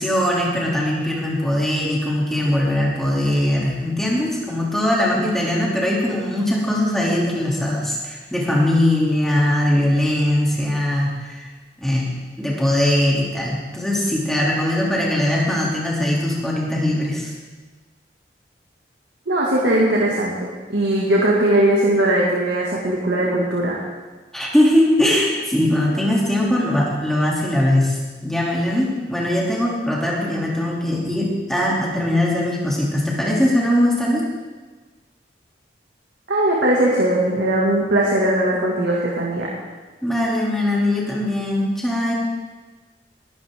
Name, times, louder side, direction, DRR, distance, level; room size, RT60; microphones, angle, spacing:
voice 1, 0.0-11.5 11.8-12.1 12.4-17.3 24.3-34.3 40.0-42.1, left 1 dB, ahead, -4 dB, 2.8 m, -20 dB
voice 2, 19.3-23.8 26.4-26.7 36.3-39.5, right 1 dB, 75° right, -4 dB, 2.1 m, -19 dB
19.0 x 12.5 x 3.7 m, 1.3 s
head